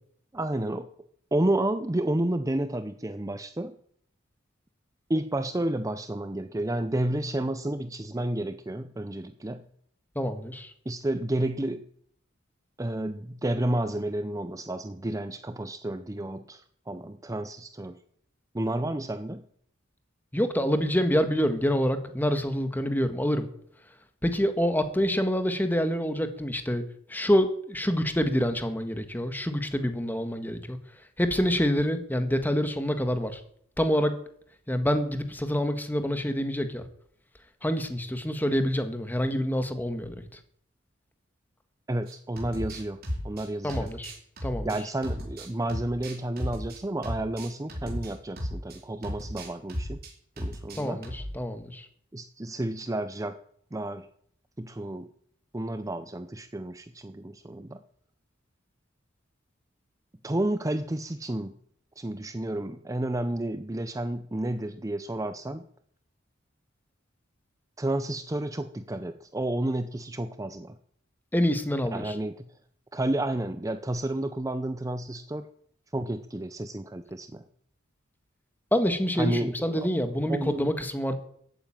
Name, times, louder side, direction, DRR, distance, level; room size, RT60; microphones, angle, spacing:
voice 1, 0.3-0.9 1.3-3.8 5.1-9.6 10.9-11.8 12.8-18.0 18.5-19.4 41.9-43.0 43.2-43.9 44.6-50.0 50.4-51.0 52.1-53.4 53.7-54.1 54.6-55.1 55.5-57.8 60.2-61.6 62.0-65.6 67.8-70.8 71.9-72.4 72.9-75.5 75.9-77.4 79.2-79.9 80.3-80.7, right 1 dB, 15° right, 10 dB, 0.6 m, -31 dB
voice 2, 10.1-10.7 20.3-23.5 24.2-26.8 27.1-30.8 31.2-33.4 33.8-34.1 34.7-36.8 37.6-40.2 43.6-44.1 44.4-44.7 50.7-51.9 71.3-72.1 78.7-81.1, equal, 10° left, 8 dB, 1.5 m, -26 dB
sound 1, 42.1-48.8 49.0-50.1 50.4-51.3, equal, 50° right, 4.9 m, -35 dB
15.0 x 9.1 x 9.0 m, 0.66 s
head